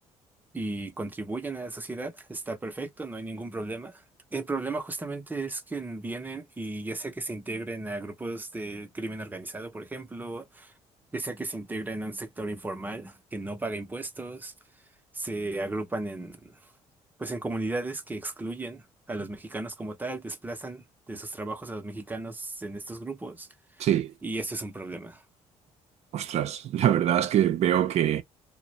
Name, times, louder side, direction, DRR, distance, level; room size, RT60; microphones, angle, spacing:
voice 1, 0.5-4.0 4.3-10.7 11.1-14.5 15.1-16.5 17.2-18.8 19.1-23.5 24.2-25.2, right 2 dB, 15° right, 0.6 m, -35 dB
voice 2, 23.8-24.1 26.1-28.2, right 11 dB, 60° right, 0.5 m, -24 dB
2.4 x 2.0 x 2.9 m
cardioid pair, 95°, 13 cm